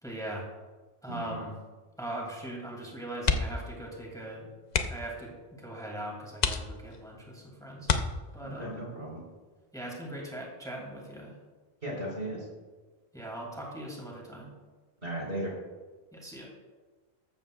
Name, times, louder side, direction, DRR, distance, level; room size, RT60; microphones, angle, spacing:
voice 1, 0.0-0.5 1.0-1.6 2.0-4.5 4.9-7.9 8.3-8.8 9.7-11.4 13.1-14.5 16.1-16.5, right 1 dB, 5° left, -2 dB, 2.3 m, -40 dB
voice 2, 1.1-1.4 8.4-9.2 11.8-12.5 15.0-15.5, right 1 dB, 65° right, -3 dB, 4.3 m, -36 dB
sound 1, 3.2-3.7 4.0-4.2 4.7-5.2 5.8-5.9 6.4-7.1 7.8-8.6 10.2-10.5 10.8-10.9, left 5 dB, 45° left, 0.7 m, -29 dB
14.0 x 12.5 x 2.3 m, 1.3 s
omnidirectional pair, 1.1 m